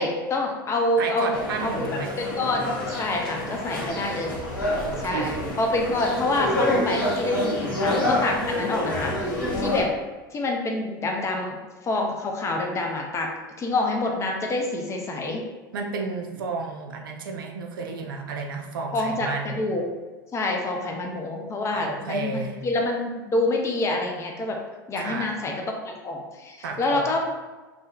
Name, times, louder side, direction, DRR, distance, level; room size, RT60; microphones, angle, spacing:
voice 1, 0.0-1.9 2.2-4.4 5.0-9.9 10.3-11.6 11.8-13.3 13.6-15.4 18.9-19.9 20.3-24.6 24.9-27.2, left 2 dB, 25° left, 1 dB, 0.5 m, -27 dB
voice 2, 1.0-2.1 4.8-5.3 15.7-19.6 21.7-22.6 25.0-25.4 26.6-27.1, right 4 dB, 75° right, 3 dB, 0.4 m, -32 dB
sound 1, 1.3-9.8, left 1 dB, 90° left, 0.8 m, -28 dB
2.7 x 2.1 x 2.3 m, 1.2 s
hypercardioid pair, 85°, 12 cm